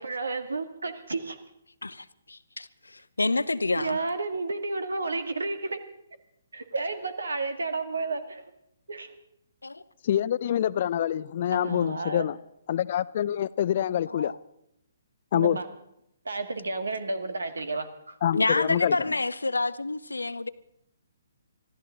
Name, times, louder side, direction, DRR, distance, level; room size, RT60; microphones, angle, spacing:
voice 1, 0.0-1.4 3.8-5.8 6.5-8.4 8.9-9.2 11.5-12.2 15.3-15.7 16.3-18.2, right 3 dB, 70° right, 1.9 m, -31 dB
voice 2, 1.8-4.0 9.6-9.8 14.1-14.3 18.3-20.5, left 3 dB, 75° left, 0.8 m, -28 dB
voice 3, 10.0-12.4 12.7-14.3 15.3-15.6 18.2-19.0, left 10 dB, 40° left, 0.5 m, -26 dB
25.0 x 14.5 x 3.9 m
figure-of-eight pair, 130°, 0 cm